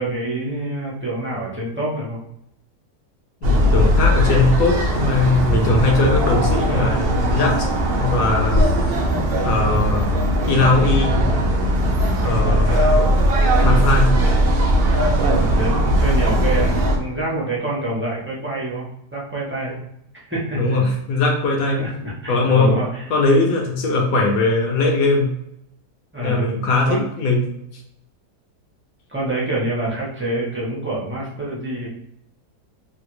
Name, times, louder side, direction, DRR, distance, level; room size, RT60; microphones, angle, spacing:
voice 1, 0.0-2.2 6.7-7.0 12.6-13.0 15.4-19.8 20.3-20.8 21.7-23.0 26.1-26.5 26.9-27.0 29.1-31.9, right 1 dB, 20° right, -7 dB, 0.3 m, -26 dB
voice 2, 3.4-7.7 8.0-8.6 9.4-10.1 10.5-11.3 12.2-13.1 13.6-14.1 20.5-21.8 22.3-22.8 23.1-25.3 26.2-27.4 27.7-27.8, left 3 dB, 65° left, 1 dB, 1.2 m, -20 dB
sound 1, 3.4-17.0, equal, 85° right, 0.5 m, -18 dB
3.2 x 2.5 x 2.9 m, 0.77 s
omnidirectional pair, 1.7 m